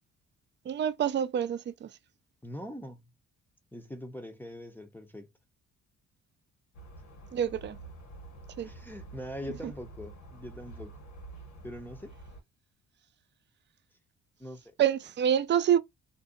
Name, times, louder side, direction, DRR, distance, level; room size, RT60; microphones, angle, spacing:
voice 1, 0.7-1.9 7.3-7.8 8.6-8.7 14.8-15.8, right 9 dB, 40° right, 0.4 m, -27 dB
voice 2, 2.4-3.0 3.7-5.3 8.6-11.0 11.6-12.1 14.4-14.6, left 1 dB, 5° left, 0.6 m, -42 dB
sound 1, 6.7-12.4, right 2 dB, 70° left, 1.2 m, -48 dB
2.6 x 2.0 x 2.3 m
cardioid pair, 90°, 30 cm